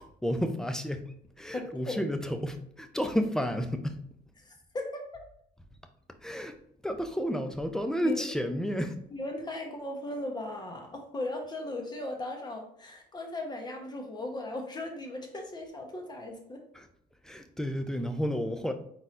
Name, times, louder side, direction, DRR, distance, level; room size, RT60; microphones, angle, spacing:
voice 1, 0.0-4.0 6.2-6.6 6.8-9.0 16.7-16.9 17.2-18.7, equal, 5° left, 7 dB, 0.4 m, -31 dB
voice 2, 1.5-2.0 4.4-5.2 8.0-8.3 9.1-16.6, left 1 dB, 25° left, 2 dB, 1.0 m, -37 dB
4.2 x 3.9 x 2.5 m, 0.68 s
cardioid pair, 110°, 17 cm